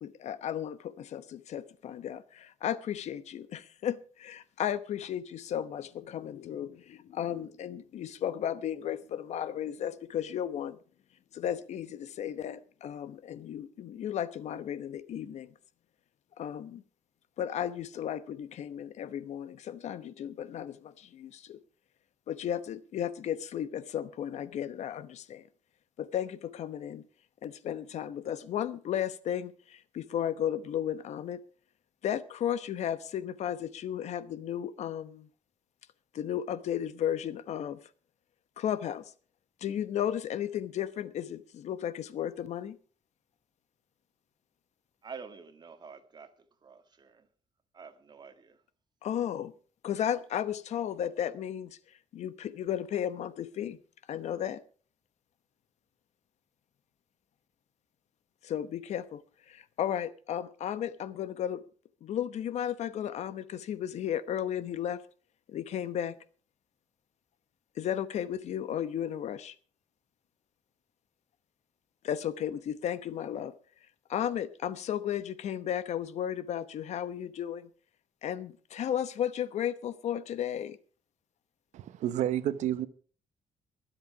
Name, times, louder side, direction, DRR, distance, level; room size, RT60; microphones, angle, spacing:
voice 1, 0.0-10.8 11.3-15.5 16.4-16.8 17.4-21.6 22.3-25.4 26.0-27.0 27.4-31.4 32.0-35.3 36.1-37.8 38.6-39.1 39.6-42.8 49.0-49.5 49.8-51.8 52.1-53.8 54.1-54.6 58.4-61.6 62.0-65.0 65.5-66.2 67.8-69.5 72.0-73.5 74.1-77.7 78.2-80.8, left 10 dB, 70° left, 1.0 m, -34 dB
voice 2, 45.0-47.3 47.7-48.6, right 5 dB, 40° right, 1.9 m, -48 dB
voice 3, 81.7-82.9, right 11 dB, 90° right, 1.0 m, -30 dB
22.0 x 8.0 x 4.8 m
cardioid pair, 115°, 12 cm